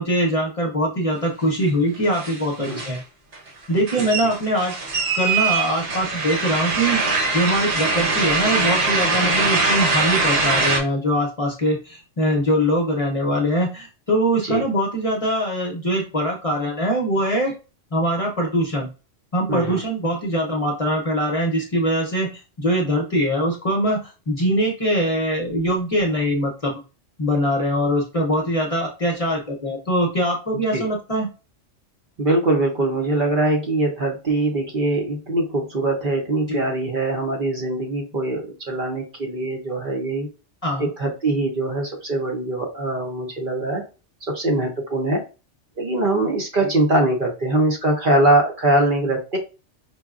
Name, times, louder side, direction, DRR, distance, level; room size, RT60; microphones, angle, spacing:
voice 1, 0.0-3.0 3.7-4.7 5.1-17.5 17.9-18.9 19.3-26.8 27.2-31.3 36.5-36.6 40.6-40.9, equal, 35° left, -1 dB, 0.7 m, -22 dB
sound 1, 1.6-1.7 1.9-3.0 3.3-10.8, right 3 dB, 70° right, 1.3 m, -22 dB
voice 2, 4.0-4.3 14.4-14.6 19.5-19.8 30.5-30.9 32.2-40.3 40.8-43.8 44.3-45.2 45.8-49.4, right 2 dB, 50° right, 1 dB, 0.8 m, -22 dB
5.4 x 2.2 x 2.4 m, 0.32 s
omnidirectional pair, 1.2 m